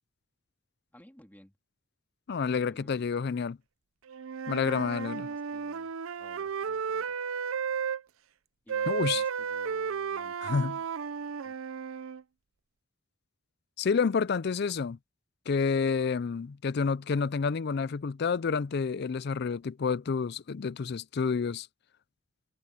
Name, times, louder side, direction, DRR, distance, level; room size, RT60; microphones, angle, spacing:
voice 1, 0.9-1.6 2.5-3.1 4.5-7.1 8.6-10.8 11.4-11.6, equal, 10° left, 2.0 m, -56 dB
voice 2, 2.3-3.6 4.5-5.3 8.9-9.2 10.4-10.8 13.8-15.0 15.5-21.7, left 5 dB, 50° left, 0.4 m, -29 dB
Wind instrument woodwind instrument, 4.1-8.0 8.7-12.2, right 6 dB, 85° right, 0.6 m, -33 dB
head